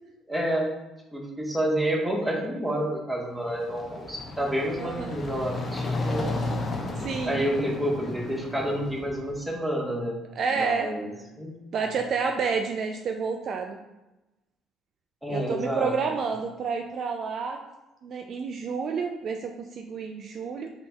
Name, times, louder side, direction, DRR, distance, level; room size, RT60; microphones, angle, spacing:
voice 1, 0.3-0.7 1.1-6.3 7.2-10.2 10.5-11.1 11.4-11.6 15.2-15.9, right 1 dB, 10° right, -1 dB, 1.3 m, -29 dB
sound 1, 3.3-9.4, left 2 dB, 35° left, 0.8 m, -33 dB
voice 2, 4.8-5.2 7.0-7.4 10.4-10.9 11.7-13.8 15.3-17.6 18.0-20.7, right 5 dB, 50° right, 4 dB, 0.3 m, -29 dB
5.4 x 3.8 x 2.3 m, 1.0 s
figure-of-eight pair, 50°, 0 cm